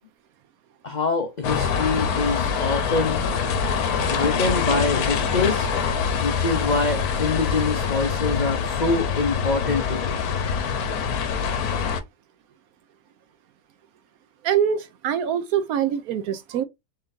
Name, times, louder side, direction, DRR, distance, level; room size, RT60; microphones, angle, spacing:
voice 1, 0.8-3.2 4.1-5.7 6.2-10.2, left 3 dB, 90° left, 0.4 m, -25 dB
sound 1, 1.4-12.0, left 6 dB, 70° left, 1.1 m, -24 dB
voice 2, 14.4-16.6, right 9 dB, 70° right, 1.0 m, -24 dB
4.3 x 3.9 x 2.6 m
omnidirectional pair, 1.8 m